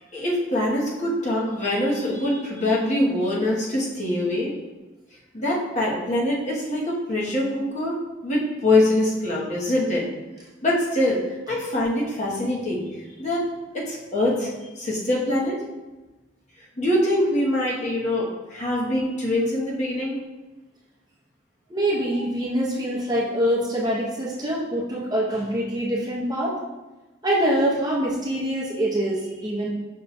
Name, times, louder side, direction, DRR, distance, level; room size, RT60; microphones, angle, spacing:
voice 1, 0.0-4.5 5.3-10.1 10.6-11.2 11.5-12.8 13.2-13.4 13.7-15.6 16.8-20.2 22.1-22.2, left 1 dB, 40° left, -4 dB, 0.9 m, -24 dB
voice 2, 21.7-26.6 27.2-29.7, right 1 dB, 20° right, -5 dB, 0.7 m, -24 dB
5.5 x 2.3 x 4.0 m, 1.1 s
head